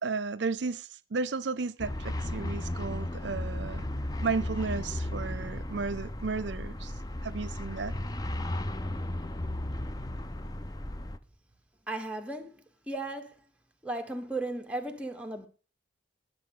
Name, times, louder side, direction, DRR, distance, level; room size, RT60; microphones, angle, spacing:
voice 1, 0.0-3.9 4.2-6.9 7.2-7.9, right 4 dB, 75° right, 0.6 m, -33 dB
sound 1, 1.8-11.2, left 1 dB, 20° left, 0.6 m, -35 dB
voice 2, 11.9-13.4 13.8-15.5, right 2 dB, 5° right, 1.5 m, -36 dB
20.5 x 7.4 x 3.8 m
head